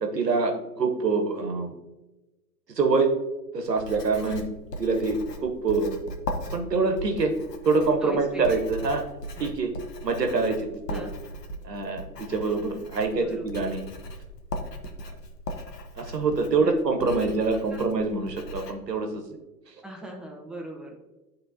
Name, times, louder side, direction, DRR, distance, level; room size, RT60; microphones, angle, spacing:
voice 1, 0.0-1.7 2.8-3.1 3.5-4.5 4.8-6.0 6.5-7.3 7.6-9.0 9.4-9.7 10.0-11.0 11.6-13.9 15.9-19.2, right 4 dB, 85° right, 5 dB, 1.2 m, -25 dB
Writing, 3.6-18.7, equal, 80° left, 1.1 m, -38 dB
voice 2, 8.0-8.6 9.4-9.5 10.9-11.1 13.1-13.5 16.5-16.7 17.5-17.8 19.8-21.0, right 1 dB, ahead, -1 dB, 0.7 m, -38 dB
11.0 x 3.7 x 2.8 m, 1.1 s
figure-of-eight pair, 110°, 48 cm